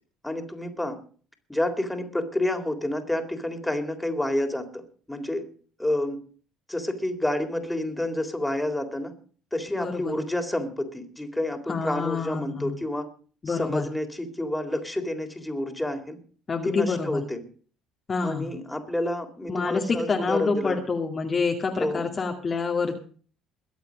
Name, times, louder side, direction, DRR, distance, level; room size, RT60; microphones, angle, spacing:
voice 1, 0.2-1.0 1.5-5.4 5.8-6.2 6.7-9.1 9.5-13.1 13.5-16.2 16.6-17.4 18.2-20.8 21.8-22.0, left 1 dB, 10° left, 5 dB, 3.7 m, -29 dB
voice 2, 9.7-10.1 11.7-12.7 13.4-13.9 16.5-17.2 18.1-18.5 19.5-23.0, left 4 dB, 35° left, 1 dB, 2.4 m, -27 dB
22.0 x 8.3 x 5.2 m, 0.42 s
hypercardioid pair, 65°, 0 cm